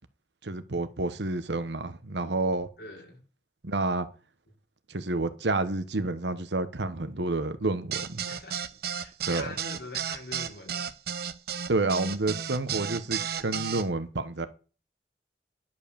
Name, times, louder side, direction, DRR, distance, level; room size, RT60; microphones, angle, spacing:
voice 1, 0.4-2.7 3.6-4.1 4.9-8.2 9.3-9.5 11.7-14.5, right 2 dB, 80° right, 1.1 m, -29 dB
voice 2, 2.8-3.2 8.3-8.6 8.9-10.9, left 2 dB, 60° left, 3.7 m, -43 dB
sound 1, 7.9-13.8, right 8 dB, 60° right, 0.8 m, -33 dB
11.0 x 5.2 x 6.9 m
head